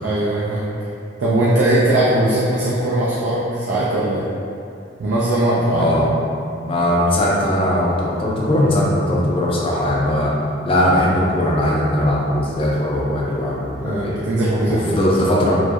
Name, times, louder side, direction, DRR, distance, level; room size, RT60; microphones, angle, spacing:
voice 1, 0.0-0.7 1.2-4.2 5.0-5.9 13.8-15.0, right 1 dB, 75° right, -7 dB, 0.4 m, -19 dB
voice 2, 5.7-6.1 6.6-10.4 10.7-14.1 14.6-15.6, left 1 dB, 30° left, -4 dB, 0.4 m, -19 dB
2.6 x 2.0 x 2.3 m, 2.5 s
head